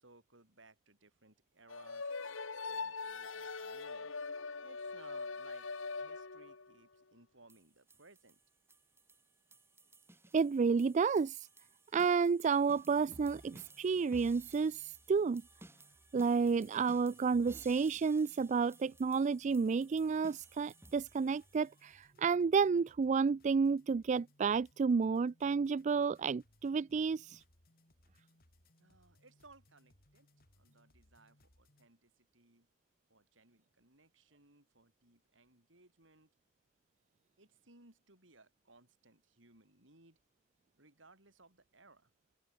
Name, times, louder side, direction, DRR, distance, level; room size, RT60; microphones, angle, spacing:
voice 1, 0.0-2.1 2.6-4.1 4.6-5.7 6.0-8.4 28.8-30.3 30.6-32.7 33.1-36.3 37.4-40.2 40.8-42.1, right 2 dB, 70° right, 5.8 m, -63 dB
sound 1, 1.7-6.7, left 4 dB, 85° left, 1.8 m, -42 dB
sound 2, 7.5-22.0, right 2 dB, 15° right, 7.1 m, -59 dB
voice 2, 10.3-11.5 11.9-15.4 16.1-27.4, right 5 dB, 35° right, 0.3 m, -31 dB
sound 3, 12.7-31.9, left 1 dB, 50° left, 5.0 m, -70 dB
open air
head